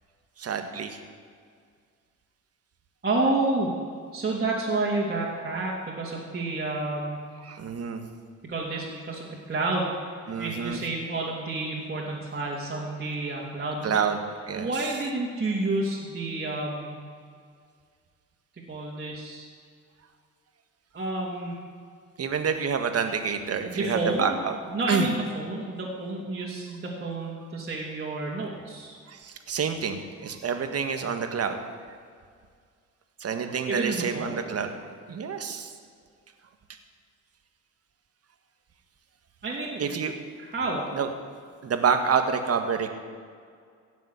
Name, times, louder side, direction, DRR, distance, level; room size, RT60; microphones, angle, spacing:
voice 1, 0.4-1.0 7.4-8.0 10.3-10.8 13.8-14.2 14.5-14.7 22.2-24.6 24.9-25.1 29.1-31.6 33.2-34.7 35.1-35.7 39.8-40.1 40.9-41.1 41.6-42.9, right 6 dB, 55° right, 7 dB, 1.7 m, -28 dB
voice 2, 3.0-3.7 4.1-7.2 8.4-10.0 10.4-14.0 14.5-17.0 18.7-19.5 20.9-21.6 23.6-24.4 24.7-29.0 33.7-34.4 39.4-39.8 40.4-40.8, right 2 dB, 35° right, -6 dB, 3.1 m, -30 dB
16.5 x 7.4 x 8.3 m, 2.1 s
cardioid pair, 90°, 30 cm